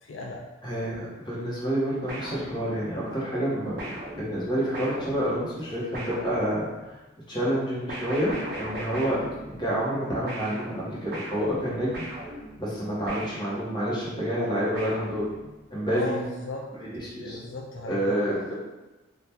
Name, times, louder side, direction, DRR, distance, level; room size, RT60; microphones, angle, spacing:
voice 1, 0.0-0.4 15.9-16.7 17.1-18.2, left 2 dB, 75° left, -1 dB, 0.4 m, -36 dB
voice 2, 0.6-7.0 7.3-12.0 12.6-15.3 15.7-16.2 16.7-17.4 17.9-18.5, equal, 25° left, -7 dB, 1.0 m, -28 dB
sound 1, 2.1-3.1 3.8-6.9 7.9-10.0 10.3-14.0 14.7-15.7, right 1 dB, 55° right, 0.8 m, -39 dB
2.8 x 2.4 x 3.4 m, 1.1 s
head